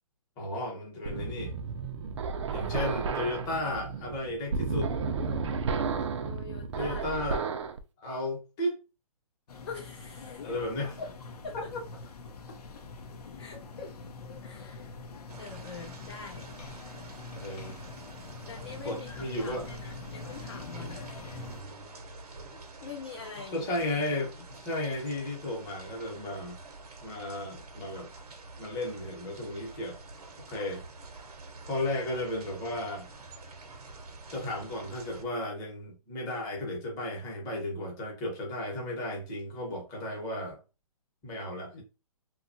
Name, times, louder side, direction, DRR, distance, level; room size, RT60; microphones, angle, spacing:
voice 1, 0.4-1.5 2.5-4.9 6.7-7.5 8.0-8.8 10.4-10.9 11.7-11.8 17.4-17.8 18.8-19.7 23.5-26.6 27.0-28.1 28.6-30.0 30.5-30.8 31.7-33.1 34.3-40.6 41.2-41.8, left 1 dB, 15° left, 0.9 m, -34 dB
sound 1, 1.1-7.8, right 5 dB, 50° right, 0.4 m, -32 dB
voice 2, 6.2-7.3 9.7-10.5 10.8-11.1 11.4-11.7 12.5-12.6 13.4-14.0 14.4-14.9 15.4-16.5 16.7-17.1 18.5-21.1 22.5-24.5 41.5-41.8, left 4 dB, 45° left, 0.6 m, -45 dB
sound 2, 9.5-21.6, left 4 dB, 85° left, 0.7 m, -44 dB
sound 3, 15.3-35.2, right 3 dB, 90° right, 0.8 m, -48 dB
2.8 x 2.3 x 2.6 m
hypercardioid pair, 160°, 19 cm